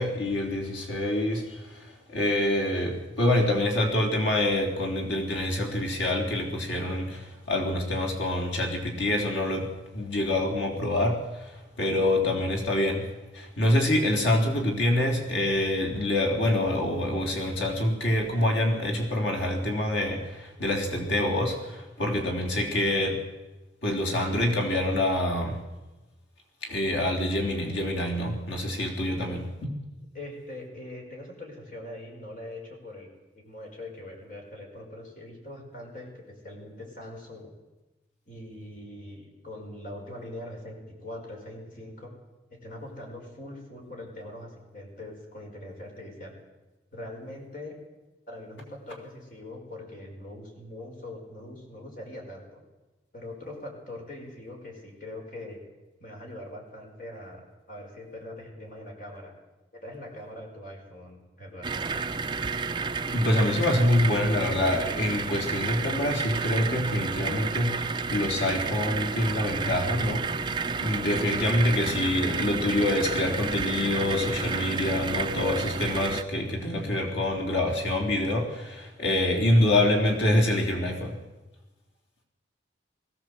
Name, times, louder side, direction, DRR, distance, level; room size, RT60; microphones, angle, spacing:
voice 1, 0.0-1.8 2.1-11.5 11.8-13.1 13.3-23.2 23.8-25.6 26.6-29.4 63.1-70.5 70.8-81.2, left 1 dB, 85° left, 2 dB, 3.8 m, -26 dB
voice 2, 30.1-33.1 33.3-37.6 38.3-42.1 42.5-46.3 46.9-47.7 48.3-52.6 53.1-55.6 56.0-59.3 59.7-61.8, left 1 dB, 45° left, 1 dB, 5.2 m, -42 dB
sound 1, 61.6-76.2, right 4 dB, 25° right, 0.6 m, -31 dB
20.5 x 16.0 x 8.0 m, 1.1 s
head